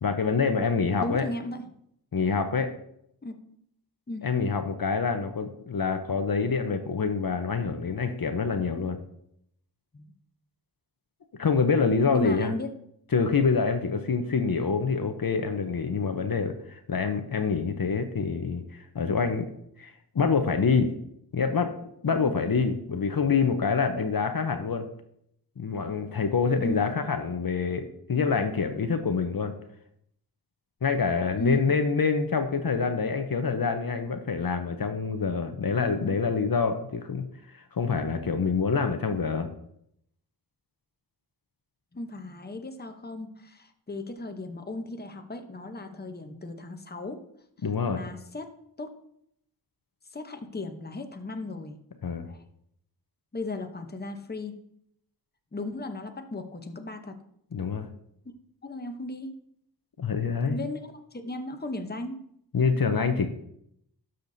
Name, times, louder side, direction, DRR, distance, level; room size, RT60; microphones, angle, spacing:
voice 1, 0.0-1.2 2.1-2.7 4.2-9.0 11.4-12.5 13.1-19.5 19.8-20.9 21.3-21.7 22.0-24.9 25.6-29.5 30.8-37.2 37.5-39.5 47.6-48.0 52.0-52.3 57.5-57.9 60.0-60.6 62.5-63.3, left 5 dB, 60° left, 7 dB, 0.7 m, -26 dB
voice 2, 1.0-1.6 3.2-3.3 4.1-4.3 9.9-10.1 12.1-12.7 22.2-22.4 26.6-26.9 31.4-31.7 41.9-47.2 47.9-48.5 48.8-48.9 50.1-51.8 52.3-52.4 53.3-54.6 55.5-57.2 58.6-59.4 60.5-62.2, left 2 dB, 25° left, 6 dB, 0.8 m, -36 dB
12.0 x 6.7 x 2.7 m, 0.73 s
wide cardioid pair, 70°, 40 cm